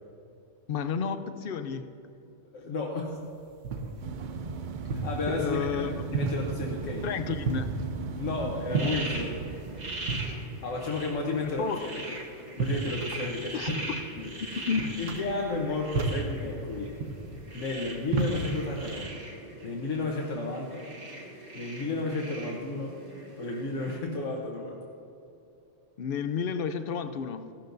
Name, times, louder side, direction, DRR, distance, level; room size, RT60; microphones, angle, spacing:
voice 1, 0.7-1.9 5.3-5.9 7.0-7.7 10.2-10.4 11.4-11.9 13.5-13.7 14.7-14.9 26.0-27.5, left 6 dB, 60° left, 10 dB, 0.7 m, -31 dB
voice 2, 2.5-3.1 5.0-7.1 8.2-9.4 10.6-11.7 12.0-12.2 12.6-13.8 14.1-14.3 15.0-17.0 17.5-19.2 19.6-20.9 21.5-23.0 23.4-24.8, left 3 dB, 90° left, -2 dB, 1.4 m, -32 dB
sound 1, 3.1-19.0, right 3 dB, 85° right, 1.2 m, -35 dB
sound 2, 4.0-10.3, right 5 dB, 55° right, 0.5 m, -37 dB
sound 3, 8.7-24.0, right 2 dB, 35° right, 1.3 m, -41 dB
15.0 x 12.0 x 2.6 m, 2.8 s
omnidirectional pair, 1.2 m